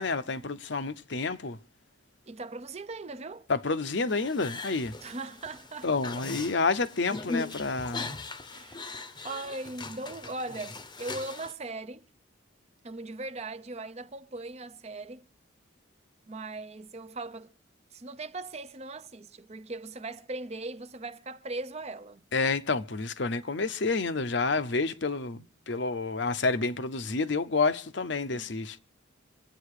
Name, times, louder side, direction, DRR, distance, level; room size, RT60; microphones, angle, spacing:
voice 1, 0.0-1.6 3.5-5.0 5.8-8.2 22.3-28.8, left 3 dB, 60° left, 0.8 m, -29 dB
voice 2, 2.3-3.5 5.0-5.9 8.5-12.0 12.8-15.3 16.2-17.5 17.9-22.2 28.3-28.5, right 2 dB, 30° right, 0.6 m, -39 dB
sound 1, 4.1-11.5, left 3 dB, 20° left, 0.8 m, -40 dB
25.5 x 9.2 x 4.9 m
head